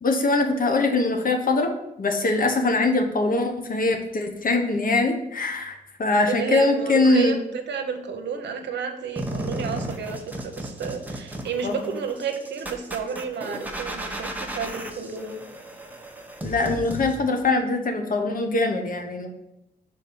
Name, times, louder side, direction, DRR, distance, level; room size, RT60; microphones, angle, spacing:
voice 1, 0.0-1.7 2.0-7.4 11.6-11.7 16.4-19.3, left 2 dB, 50° left, 4 dB, 1.1 m, -22 dB
voice 2, 6.3-15.4, right 6 dB, 80° right, 6 dB, 0.9 m, -31 dB
sound 1, 9.2-17.1, right 1 dB, 10° right, 1.0 m, -34 dB
5.3 x 4.1 x 5.8 m, 0.85 s
cardioid pair, 70°, 18 cm